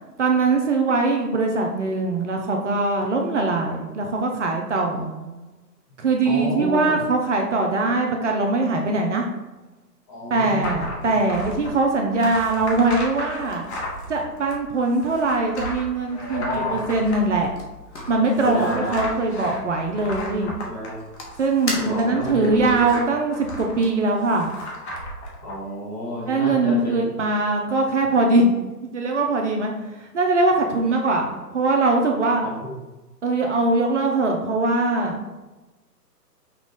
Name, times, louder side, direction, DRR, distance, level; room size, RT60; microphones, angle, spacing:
voice 1, 0.2-5.1 6.0-9.3 10.3-13.6 14.1-17.5 18.1-20.5 21.4-24.5 26.3-28.5 28.8-29.7 30.0-32.4 33.2-35.2, right 3 dB, 50° right, 2 dB, 0.6 m, -22 dB
voice 2, 4.7-5.5 6.2-6.9 10.1-11.1 16.1-16.9 18.4-19.0 20.6-21.0 21.7-23.0 25.4-27.2 32.4-32.8, equal, 15° left, -7 dB, 0.8 m, -30 dB
sound 1, 10.6-25.5, equal, 45° left, 1.0 m, -35 dB
sound 2, 17.2-22.4, left 1 dB, 90° left, 1.4 m, -38 dB
5.8 x 2.3 x 3.5 m, 1.1 s
figure-of-eight pair, 140°, 49 cm